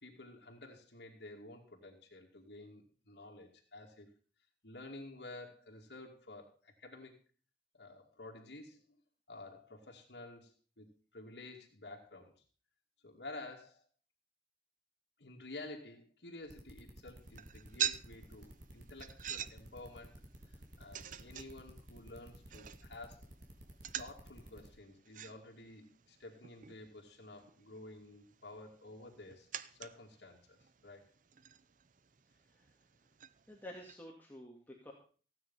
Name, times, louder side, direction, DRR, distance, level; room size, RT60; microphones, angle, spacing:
voice 1, 0.0-4.1 4.6-7.1 7.7-9.0 9.3-10.9 11.1-12.3 13.0-13.8 15.2-20.2 20.5-23.3 24.0-31.0, left 2 dB, 75° left, -1 dB, 2.5 m, -51 dB
sound 1, 16.5-24.7, right 1 dB, 75° right, 3.2 m, -53 dB
sound 2, 17.2-34.0, right 10 dB, 45° right, 0.6 m, -47 dB
voice 2, 33.5-34.9, left 1 dB, 10° left, -1 dB, 2.1 m, -50 dB
15.5 x 9.2 x 5.6 m, 0.40 s
head